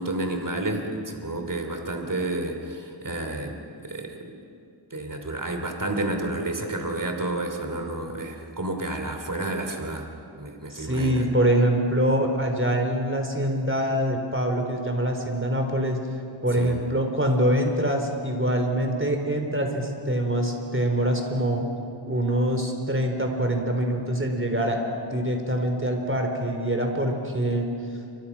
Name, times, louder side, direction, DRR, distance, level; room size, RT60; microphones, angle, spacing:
voice 1, 0.0-4.3 4.9-10.1 10.3-11.3 16.5-16.8, right 2 dB, 40° right, 4 dB, 3.0 m, -30 dB
voice 2, 10.7-16.0 16.4-21.6 22.1-24.8 25.1-27.7, right 1 dB, 25° right, 3 dB, 4.1 m, -24 dB
28.0 x 25.0 x 6.1 m, 2.5 s
wide cardioid pair, 55°, 47 cm